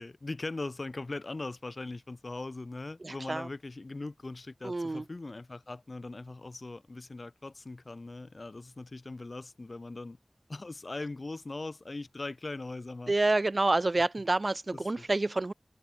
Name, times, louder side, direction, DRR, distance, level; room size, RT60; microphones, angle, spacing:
voice 1, 0.0-10.2 10.5-13.2 14.7-15.1, left 2 dB, 70° left, 1.4 m, -40 dB
voice 2, 3.0-3.5 4.6-5.0 13.1-15.5, right 2 dB, 65° right, 0.6 m, -28 dB
wide cardioid pair, 45°, 0 cm